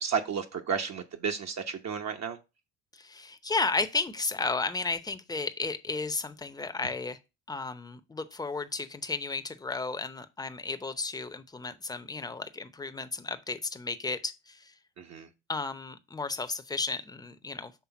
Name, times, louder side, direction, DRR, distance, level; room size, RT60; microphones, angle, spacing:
voice 1, 0.0-2.4 15.0-15.3, right 6 dB, 45° right, 0.9 m, -32 dB
voice 2, 2.9-7.2 7.5-14.7 15.5-17.7, left 3 dB, 10° left, 0.7 m, -33 dB
6.1 x 3.4 x 5.7 m
supercardioid pair, 75°, 39 cm